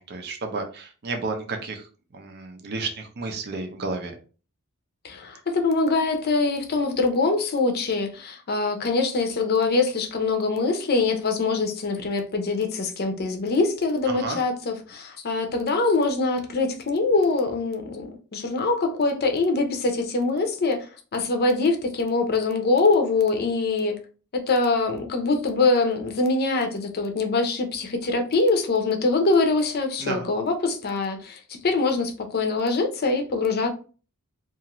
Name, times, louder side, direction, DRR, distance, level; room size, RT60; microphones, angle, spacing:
voice 1, 0.0-1.9 2.1-4.1 14.1-14.4 30.0-30.3, right 3 dB, 50° right, 0.5 m, -32 dB
voice 2, 5.0-20.9 21.1-24.0 24.3-33.7, left 3 dB, 45° left, 0.6 m, -23 dB
2.5 x 2.4 x 2.9 m
head